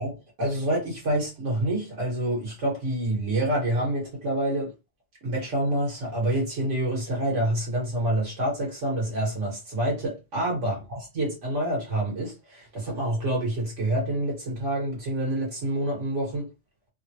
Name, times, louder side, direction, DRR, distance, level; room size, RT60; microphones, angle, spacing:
voice 1, 0.0-4.7 5.2-16.5, right 1 dB, 80° right, 1.9 m, -27 dB
3.5 x 2.2 x 2.8 m
omnidirectional pair, 1.2 m